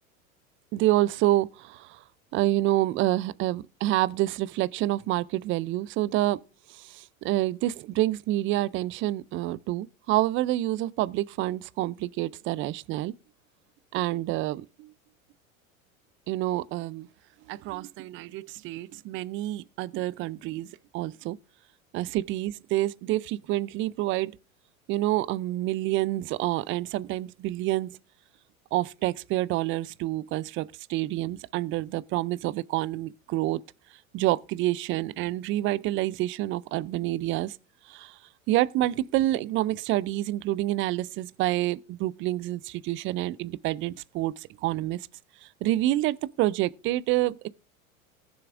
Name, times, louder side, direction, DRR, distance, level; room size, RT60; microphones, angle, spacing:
voice 1, 0.7-2.0 2.3-6.4 6.7-13.1 13.9-14.9 16.3-17.1 17.5-21.4 21.9-24.3 24.9-28.0 28.7-33.6 34.1-37.6 37.9-38.2 38.5-45.1 45.6-47.5, right 16 dB, 30° right, 0.4 m, -28 dB
19.0 x 7.0 x 2.5 m
hypercardioid pair, 90°, 42 cm